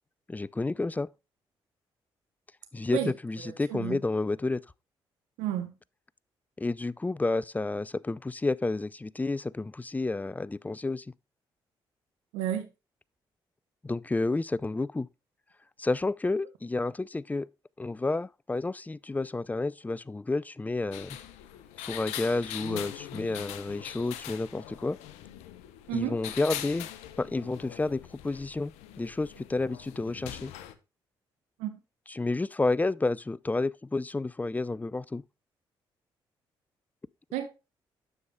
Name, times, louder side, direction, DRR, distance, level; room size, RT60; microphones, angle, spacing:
voice 1, 0.3-1.1 2.7-4.6 6.6-11.1 13.8-15.1 15.8-17.5 17.8-21.2 21.8-25.0 25.9-26.9 27.2-28.7 29.0-30.5 32.1-35.2, left 3 dB, 15° left, 0.4 m, -30 dB
voice 2, 3.4-4.0 5.4-5.7 12.3-12.7 25.9-26.2 31.6-31.8 37.3-37.5, right 11 dB, 85° right, 0.9 m, -31 dB
sound 1, 20.9-30.7, left 12 dB, 85° left, 0.7 m, -42 dB
9.7 x 6.9 x 2.2 m
hypercardioid pair, 45°, 11 cm